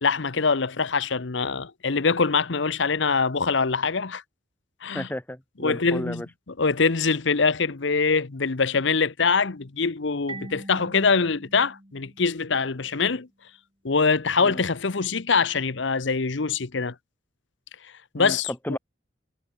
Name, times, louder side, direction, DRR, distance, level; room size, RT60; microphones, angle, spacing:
voice 1, 0.0-4.2 4.8-5.1 5.6-13.3 13.8-16.9 18.1-18.8, left 4 dB, 65° left, 0.9 m, -24 dB
voice 2, 4.9-6.3 14.4-14.6 18.2-18.4 18.6-18.8, left 1 dB, 10° left, 1.0 m, -33 dB
Marimba xylophone, 10.3-12.9, right 2 dB, 25° right, 2.9 m, -43 dB
head